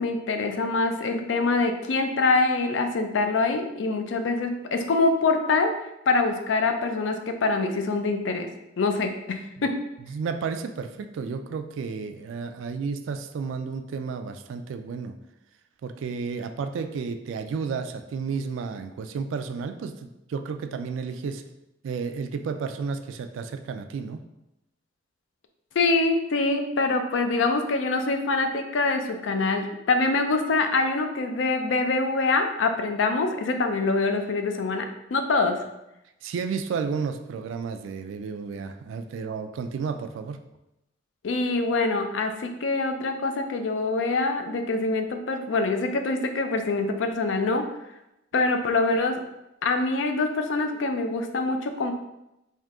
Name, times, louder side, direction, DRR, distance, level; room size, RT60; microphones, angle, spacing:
voice 1, 0.0-5.7 6.1-8.5 8.8-9.8 25.8-35.6 41.2-47.7 48.3-49.2 49.6-51.9, left 3 dB, 70° left, 6 dB, 0.4 m, -25 dB
voice 2, 10.1-15.1 15.8-21.4 21.8-24.2 36.2-40.4, right 5 dB, 85° right, 8 dB, 0.3 m, -32 dB
3.6 x 2.7 x 3.6 m, 0.90 s
head